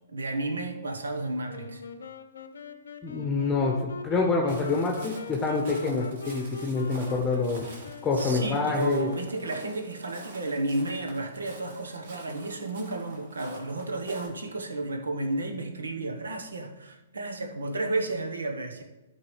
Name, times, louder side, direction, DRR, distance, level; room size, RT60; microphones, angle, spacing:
voice 1, 0.1-1.8 8.2-18.8, right 2 dB, 80° right, 5 dB, 1.1 m, -32 dB
Wind instrument woodwind instrument, 1.5-10.2, left 3 dB, 75° left, 0.7 m, -42 dB
voice 2, 3.0-7.6 8.0-9.1, left 4 dB, 15° left, 1 dB, 1.0 m, -27 dB
Walk footsteps, 4.5-14.3, right 2 dB, 55° right, 1.8 m, -46 dB
12.5 x 4.7 x 3.3 m, 1.1 s
figure-of-eight pair, 120°, 0 cm